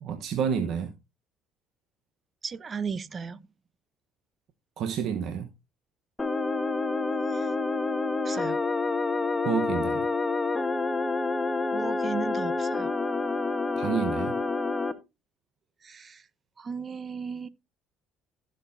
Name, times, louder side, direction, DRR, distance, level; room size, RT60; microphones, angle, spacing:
voice 1, 0.0-0.9 4.8-5.5 9.4-10.1 13.8-14.4, right 7 dB, 60° right, 1.1 m, -29 dB
voice 2, 2.4-3.5 7.3-7.5 8.2-8.6 11.7-12.9 15.8-16.2 16.6-17.5, right 5 dB, 35° right, 0.8 m, -36 dB
sound 1, 6.2-14.9, left 3 dB, 20° left, 1.3 m, -28 dB
15.0 x 6.5 x 2.7 m
supercardioid pair, 70°, 0 cm